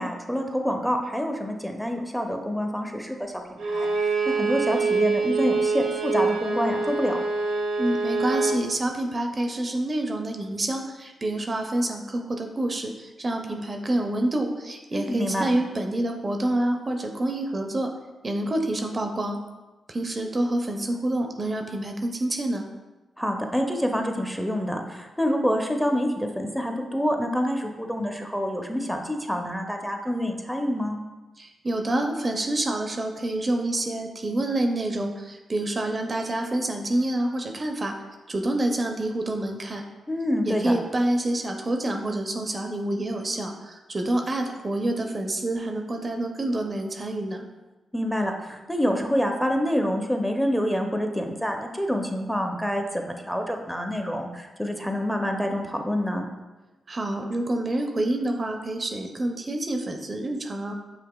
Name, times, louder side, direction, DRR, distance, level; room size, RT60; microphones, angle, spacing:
voice 1, 0.0-3.3 3.6-7.2 14.9-15.5 23.2-31.0 40.1-40.8 47.9-56.3, equal, 5° left, 3 dB, 0.5 m, -27 dB
Bowed string instrument, 3.6-8.6, right 4 dB, 90° right, 0.6 m, -25 dB
voice 2, 7.8-17.9 18.2-19.4 19.9-22.7 31.4-37.9 38.3-39.8 40.4-47.4 56.9-60.7, right 1 dB, 40° right, 4 dB, 0.4 m, -27 dB
5.8 x 2.4 x 2.3 m, 1.1 s
supercardioid pair, 45°, 0 cm